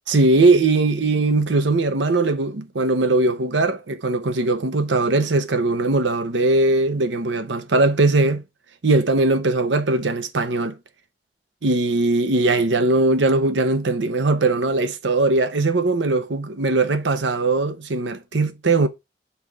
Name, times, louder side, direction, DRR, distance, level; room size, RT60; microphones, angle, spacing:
voice 1, 0.1-8.4 8.8-10.8 11.6-18.9, right 2 dB, 90° right, 0.9 m, -20 dB
5.8 x 4.2 x 4.7 m
head